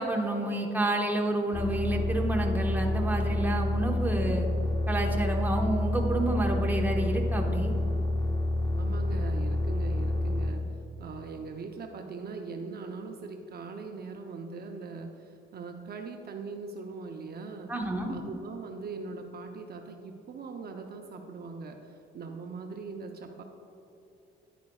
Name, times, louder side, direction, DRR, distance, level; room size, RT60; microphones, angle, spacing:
voice 1, 0.0-4.5 4.9-7.7 17.7-18.1, right 1 dB, 10° right, 0 dB, 1.2 m, -29 dB
sound 1, 1.5-10.5, left 1 dB, 20° left, 1.0 m, -28 dB
voice 2, 8.7-10.6 11.0-17.7 18.1-23.4, right 4 dB, 50° right, 3 dB, 0.7 m, -41 dB
10.5 x 9.2 x 2.4 m, 3.0 s
cardioid pair, 90°, 20 cm